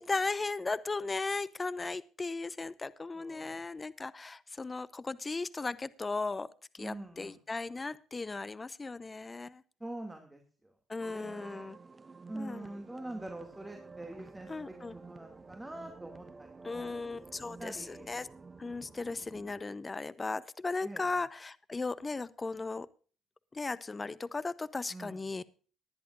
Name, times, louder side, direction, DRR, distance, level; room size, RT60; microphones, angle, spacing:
voice 1, 0.0-6.5 6.7-9.6 10.9-11.8 12.3-12.7 14.5-14.9 16.6-18.3 18.6-22.9 23.5-25.4, left 3 dB, 25° left, 17 dB, 0.8 m, -36 dB
voice 2, 3.1-3.7 6.8-7.4 9.8-10.7 11.0-11.7 12.3-16.9 17.6-18.1 20.8-21.2 24.9-25.2, right 1 dB, 15° right, 4 dB, 2.4 m, -45 dB
sound 1, 11.0-19.6, right 4 dB, 30° right, 1.0 m, -51 dB
19.5 x 11.0 x 2.5 m, 0.38 s
hypercardioid pair, 55°, 0 cm